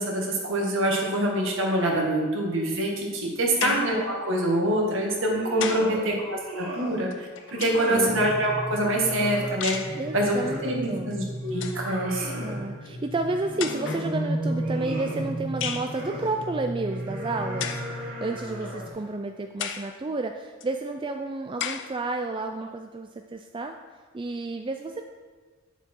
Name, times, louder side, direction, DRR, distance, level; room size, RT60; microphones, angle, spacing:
voice 1, 0.0-12.3, right 1 dB, 60° right, -1 dB, 1.9 m, -25 dB
sound 1, 3.6-4.0 5.1-6.0 7.1-8.0 9.6-10.0 11.1-11.2 11.5-11.9 12.9-13.0 13.6-14.1 15.6-15.9 17.6-17.9 18.6-18.7 19.6-19.9 20.6-20.7 21.6-21.9, left 8 dB, 60° left, 0.6 m, -33 dB
sound 2, 5.1-6.0 6.3-7.0 7.4-8.3 8.7-10.8 11.2-12.6 13.3-14.1 14.5-15.3 15.7-16.3 16.8-19.0, equal, 85° right, 2.6 m, -39 dB
voice 2, 5.8-6.2 7.9-8.2 10.0-11.2 12.4-23.8 24.1-25.0, right 3 dB, 25° right, 5 dB, 0.4 m, -31 dB
sound 3, 7.7-18.9, right 1 dB, 10° left, 1.0 m, -34 dB
10.0 x 6.8 x 4.5 m, 1.5 s
head